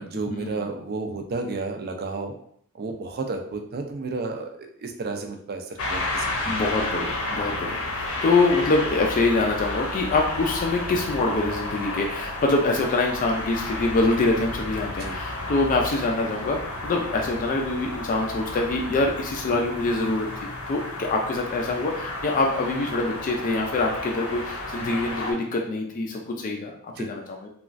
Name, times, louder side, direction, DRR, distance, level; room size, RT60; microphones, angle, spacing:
voice 1, 0.0-2.3 2.7-6.6 15.0-15.2 27.0-27.1, right 3 dB, 45° right, 4 dB, 0.4 m, -32 dB
sound 1, 5.8-25.3, left 2 dB, 70° left, 0.7 m, -32 dB
voice 2, 6.5-27.5, left 3 dB, 35° left, 1 dB, 0.3 m, -25 dB
3.0 x 2.3 x 2.5 m, 0.64 s
head